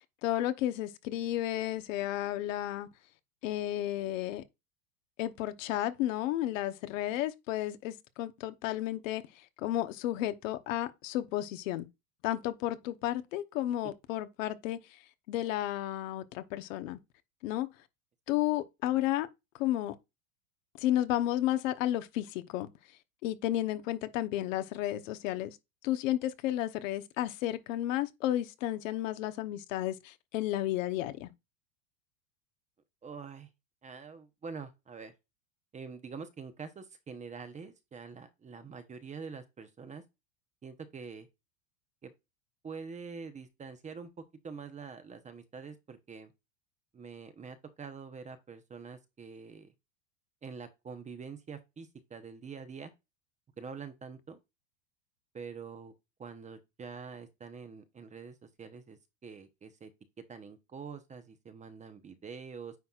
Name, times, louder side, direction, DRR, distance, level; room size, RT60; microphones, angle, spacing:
voice 1, 0.2-2.9 3.4-4.4 5.2-9.2 9.6-11.9 12.2-14.8 15.3-17.0 17.4-17.7 18.3-19.3 19.6-19.9 20.8-22.7 23.2-25.6 25.8-31.3, left 13 dB, 70° left, 1.0 m, -32 dB
voice 2, 33.0-33.5 33.8-35.1 35.7-40.0 40.6-41.3 42.0-42.1 42.6-44.1 44.4-46.3 46.9-49.7 50.4-52.9 53.6-54.4 55.3-55.9 56.2-59.9 60.3-62.7, right 5 dB, 20° right, 0.8 m, -45 dB
9.4 x 4.2 x 2.4 m
supercardioid pair, 115°, 40 cm